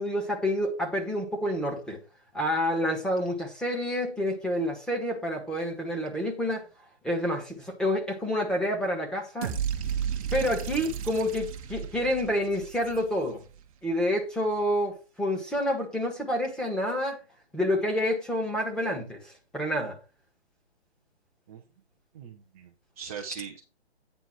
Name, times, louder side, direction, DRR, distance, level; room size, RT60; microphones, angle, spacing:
voice 1, 0.0-2.0 2.3-6.6 7.0-9.5 10.3-13.4 13.8-17.2 17.5-20.0, equal, ahead, 1.4 m, -28 dB
sound 1, 9.4-13.5, right 8 dB, 30° right, 0.9 m, -33 dB
voice 2, 22.1-23.6, right 7 dB, 15° right, 0.4 m, -41 dB
9.1 x 4.0 x 6.2 m
hypercardioid pair, 145°, 33 cm